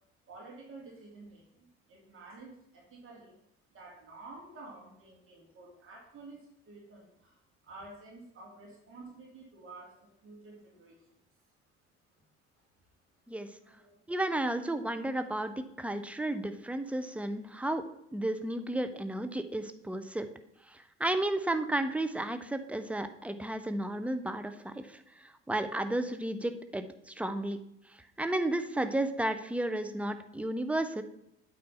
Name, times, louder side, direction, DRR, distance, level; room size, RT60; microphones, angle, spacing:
voice 1, 0.3-3.4 3.7-11.1 13.6-13.9, right 3 dB, 40° right, -2 dB, 2.8 m, -51 dB
voice 2, 14.1-17.9 18.1-20.3 20.7-27.6 28.2-31.0, right 1 dB, 5° right, 9 dB, 0.7 m, -33 dB
8.6 x 4.2 x 5.6 m, 0.79 s
figure-of-eight pair, 60°, 33 cm